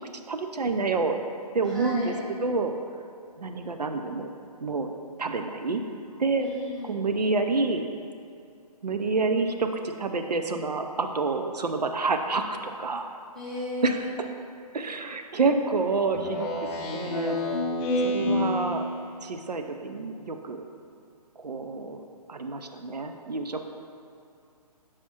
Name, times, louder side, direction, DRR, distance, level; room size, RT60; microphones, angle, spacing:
voice 1, 0.3-1.2 1.5-2.7 3.4-4.3 4.6-4.9 5.2-5.8 6.2-6.5 6.8-7.9 8.8-13.1 13.8-14.3 14.7-17.4 18.0-18.8 19.2-20.7 21.4-22.0 22.3-23.6, right 3 dB, 90° right, 6 dB, 0.5 m, -28 dB
voice 2, 1.7-2.2 6.4-7.0 13.3-14.0, left 1 dB, ahead, -8 dB, 1.2 m, -35 dB
Speech synthesizer, 16.1-19.2, left 1 dB, 20° left, 0.5 m, -28 dB
7.3 x 4.8 x 2.8 m, 2.4 s
figure-of-eight pair, 135°, 20 cm